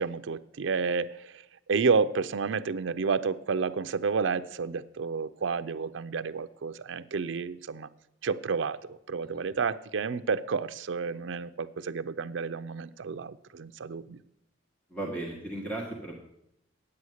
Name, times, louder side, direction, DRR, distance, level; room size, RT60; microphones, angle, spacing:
voice 1, 0.0-1.4 1.7-7.9 8.2-14.2, right 5 dB, 70° right, 10 dB, 0.5 m, -30 dB
voice 2, 14.9-16.1, right 2 dB, 10° left, -1 dB, 1.4 m, -36 dB
9.6 x 8.3 x 6.4 m, 0.79 s
head